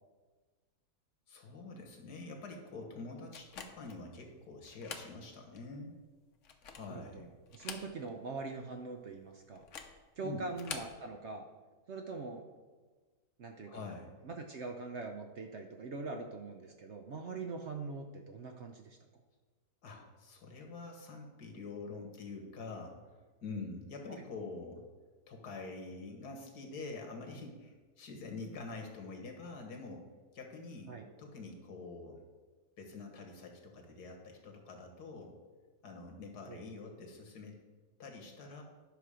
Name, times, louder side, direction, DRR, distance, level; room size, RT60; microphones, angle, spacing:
voice 1, 1.3-6.0 6.7-7.3 10.2-10.4 13.7-14.1 19.8-23.0 23.4-24.8 25.3-30.1 30.3-30.9 31.2-32.2 32.8-35.4 35.8-37.6 38.0-38.6, left 3 dB, 75° left, 2 dB, 2.0 m, -46 dB
sound 1, 3.3-4.0 4.6-5.1 5.6-5.7 6.3-7.0 7.5-8.2 8.5-8.6 9.5-10.0 10.5-11.0, left 6 dB, 55° left, 1.1 m, -46 dB
voice 2, 6.8-7.2 7.5-9.6 10.2-11.5 11.9-12.5 13.4-13.8 14.2-19.0 24.1-24.2 30.9-31.0 36.5-36.6, right 3 dB, 55° right, 4 dB, 0.8 m, -43 dB
10.0 x 6.2 x 5.0 m, 1.3 s
omnidirectional pair, 1.7 m